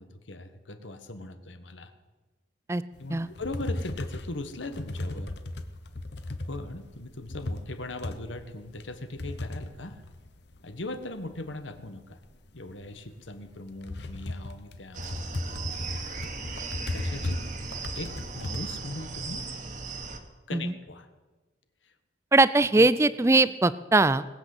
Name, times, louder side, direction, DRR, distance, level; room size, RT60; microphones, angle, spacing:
voice 1, 0.0-1.9 3.0-5.3 6.4-10.0 10.6-12.2 12.5-15.1 16.9-17.5 17.9-19.5 20.5-21.1 21.8-21.9 22.7-22.9, left 2 dB, 90° left, 9 dB, 1.4 m, -39 dB
sound 1, 2.9-10.9 11.2-18.7, left 1 dB, 65° left, 1.0 m, -36 dB
sound 2, 14.9-20.2, right 4 dB, 40° right, 1.5 m, -37 dB
voice 2, 22.3-24.3, right 2 dB, 15° right, 16 dB, 0.4 m, -21 dB
20.0 x 8.1 x 7.8 m, 1.2 s
head